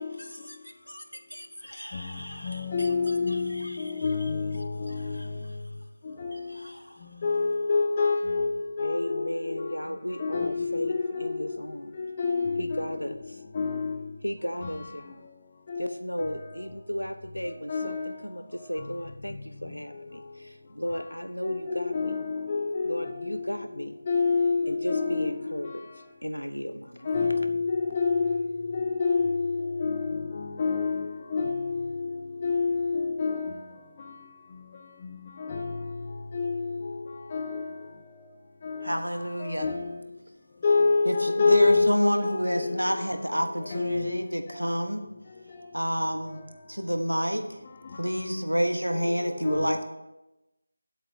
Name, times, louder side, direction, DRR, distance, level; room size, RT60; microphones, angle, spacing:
voice 1, 0.2-4.3 4.9-5.7 6.3-7.2 8.8-12.0 12.6-13.4 14.2-15.2 15.8-22.2 22.8-24.0 24.7-27.2, equal, 85° left, 0.8 m, -36 dB
voice 2, 1.9-5.4 6.0-6.6 7.2-9.8 10.1-11.5 11.9-13.0 13.5-14.2 14.6-14.9 15.7-16.4 17.4-18.3 18.6-18.9 21.4-25.8 27.0-33.7 34.0-34.2 35.0-37.9 38.6-40.0 40.6-44.2 44.5-44.7 46.0-46.4 47.7-48.2 48.9-49.8, left 4 dB, 25° left, 0.5 m, -29 dB
voice 3, 38.8-39.7 41.0-45.0 45.7-46.4 46.7-47.6 47.9-49.8, equal, 85° right, 1.2 m, -28 dB
17.0 x 7.9 x 2.8 m
figure-of-eight pair, 165°, 0 cm